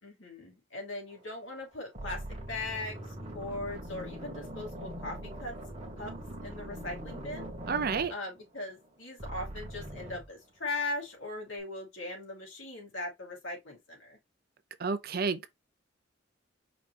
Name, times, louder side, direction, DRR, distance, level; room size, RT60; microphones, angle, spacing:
voice 1, 0.0-5.6 6.0-6.1 6.4-7.5 8.1-14.2, left 2 dB, 80° left, 2.9 m, -39 dB
sound 1, 1.3-1.6 1.9-8.9 9.2-10.3, right 1 dB, 35° right, 1.2 m, -42 dB
voice 2, 7.7-8.1 14.8-15.5, right 5 dB, 50° right, 0.6 m, -30 dB
4.9 x 3.2 x 3.4 m
head